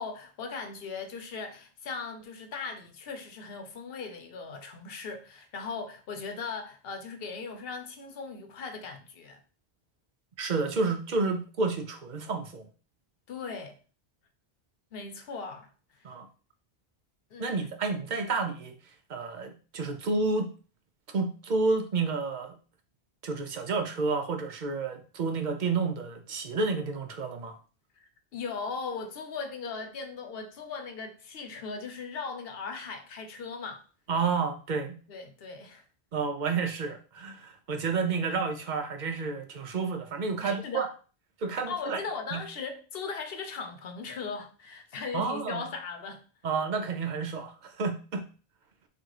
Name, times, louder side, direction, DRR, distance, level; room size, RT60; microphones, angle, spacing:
voice 1, 0.0-9.4 13.3-13.8 14.9-15.7 17.3-17.6 28.0-33.8 35.1-35.8 40.4-40.9 41.7-46.2, left 5 dB, 70° left, 0.9 m, -38 dB
voice 2, 10.4-12.7 16.0-16.3 17.4-18.8 19.1-20.5 21.1-22.5 23.2-27.6 34.1-35.0 36.1-40.9 41.4-42.0 42.3-42.4 45.1-45.7 46.4-48.3, right 4 dB, 50° right, 0.7 m, -30 dB
3.9 x 2.5 x 4.7 m
omnidirectional pair, 1.0 m